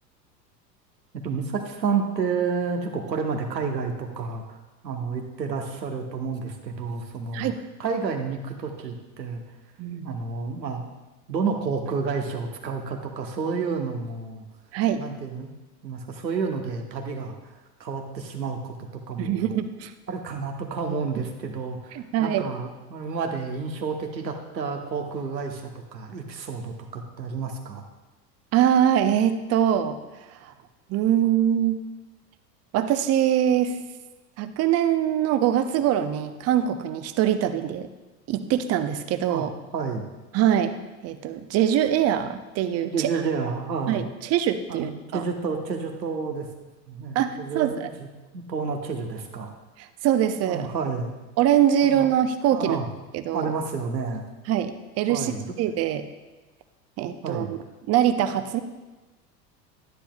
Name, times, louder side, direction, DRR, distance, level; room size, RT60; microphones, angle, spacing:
voice 1, 1.2-4.6 4.8-7.5 7.8-9.4 10.0-10.9 11.3-14.4 14.9-15.6 15.8-18.7 19.1-19.5 20.1-27.8 39.3-39.4 39.7-40.0 42.9-44.1 44.7-46.5 46.9-48.1 48.3-49.5 50.4-51.1 51.8-52.1 52.5-52.9 53.3-54.2 55.1-55.5 57.2-57.5, right 5 dB, 80° right, 3 dB, 1.2 m, -30 dB
voice 2, 19.2-19.9 22.0-22.4 28.5-30.0 30.4-30.5 30.9-31.8 32.7-33.8 34.4-37.9 38.3-39.5 40.3-40.7 41.0-43.1 43.9-45.2 47.1-47.9 50.0-50.7 51.4-52.8 53.1-53.5 54.5-55.3 55.6-56.1 57.0-57.6 57.9-58.6, right 10 dB, 30° right, 10 dB, 0.6 m, -23 dB
11.5 x 9.9 x 2.3 m, 1.1 s
figure-of-eight pair, 80°, 50 cm